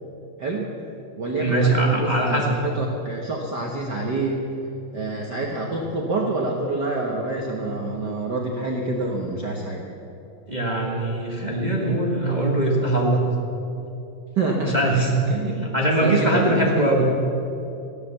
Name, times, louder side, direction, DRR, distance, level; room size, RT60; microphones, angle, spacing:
voice 1, 0.4-0.7 1.2-4.4 4.9-9.9 14.4-14.8 15.3-15.6 16.0-16.9, right 2 dB, 75° right, -1 dB, 0.9 m, -27 dB
voice 2, 1.4-2.6 10.5-13.3 14.6-15.1 15.5-17.1, right 1 dB, 30° right, -2 dB, 0.7 m, -21 dB
15.0 x 12.0 x 7.0 m, 2.8 s
omnidirectional pair, 3.8 m